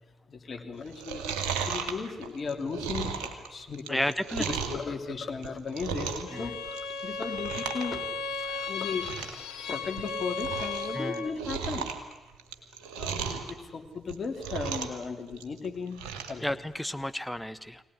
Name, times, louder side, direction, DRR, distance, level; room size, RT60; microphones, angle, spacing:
voice 1, 0.3-4.0 4.5-6.8 7.0-8.1 8.6-9.1 9.7-11.9 13.0-16.5, left 5 dB, 50° left, 4 dB, 3.0 m, -36 dB
Chewing mastication, 0.9-4.8 5.3-6.4 6.6-7.0 7.3-7.9 8.1-8.2 8.7-8.8 9.0-9.4 9.8-10.9 11.1-13.5 14.0-15.0 15.3-16.4 16.8-16.9, right 6 dB, 80° right, 2.0 m, -35 dB
voice 2, 3.9-4.4 6.3-6.5 8.5-8.7 10.9-11.2 16.4-17.8, left 1 dB, 5° left, 11 dB, 1.4 m, -32 dB
Bowed string instrument, 6.3-11.4, left 4 dB, 75° left, 1.4 m, -35 dB
23.0 x 18.5 x 9.9 m, 1.1 s
hypercardioid pair, 40°, 0 cm